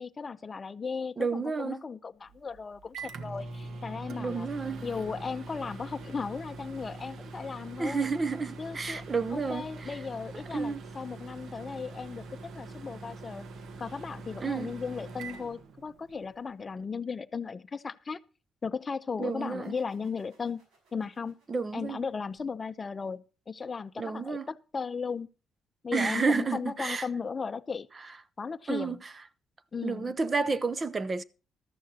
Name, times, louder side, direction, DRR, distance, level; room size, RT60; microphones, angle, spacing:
voice 1, 0.0-4.5 4.8-8.1 8.6-9.0 9.3-13.4 13.8-18.2 18.6-20.6 20.9-21.3 21.7-25.3 25.8-27.9 28.4-29.0 29.7-30.1, left 5 dB, 35° left, 0.6 m, -36 dB
voice 2, 1.2-1.8 4.1-4.8 7.8-10.0 10.5-10.8 14.4-14.7 19.2-19.7 21.5-22.0 24.0-24.5 25.9-27.1 28.7-29.1 29.8-31.2, right 4 dB, 30° right, 0.6 m, -31 dB
Microwave oven, 2.3-16.3, right 3 dB, 65° right, 1.2 m, -43 dB
sound 1, 19.6-22.9, right 4 dB, 80° right, 5.6 m, -67 dB
14.0 x 13.0 x 2.8 m
cardioid pair, 90°, 0 cm